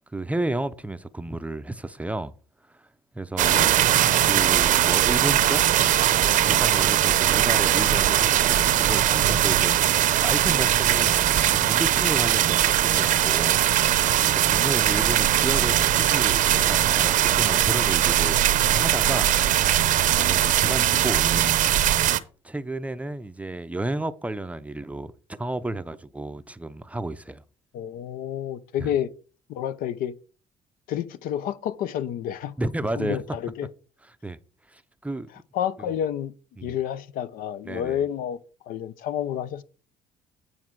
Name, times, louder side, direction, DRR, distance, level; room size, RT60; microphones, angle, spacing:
voice 1, 0.0-2.3 2.7-2.9 3.1-3.7 4.2-5.6 6.5-9.8 10.2-13.6 14.3-19.3 20.2-21.6 22.4-27.4 28.8-28.9 32.6-33.2 34.2-34.4 34.7-35.3 35.8-35.9 36.6-36.8 37.7-38.0, right 2 dB, 10° right, 0.5 m, -32 dB
sound 1, 3.4-22.2, right 12 dB, 65° right, 0.6 m, -20 dB
voice 2, 27.7-29.1 29.5-30.1 30.9-32.5 32.9-33.7 35.5-36.3 36.6-38.4 38.7-39.6, left 10 dB, 75° left, 0.6 m, -29 dB
9.5 x 4.9 x 4.6 m
cardioid pair, 110°, 15 cm